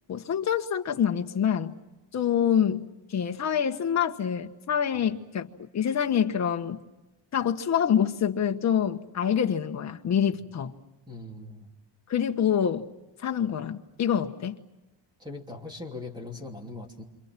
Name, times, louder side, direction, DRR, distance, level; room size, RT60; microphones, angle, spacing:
voice 1, 0.1-1.7 2.1-2.8 3.1-6.8 7.3-10.7 12.1-12.8 13.2-14.6, left 8 dB, 35° left, 5 dB, 1.3 m, -26 dB
voice 2, 11.1-11.7 15.2-17.0, left 2 dB, 10° right, 3 dB, 2.9 m, -40 dB
28.5 x 27.0 x 6.0 m, 1.1 s
cardioid pair, 180°, 49 cm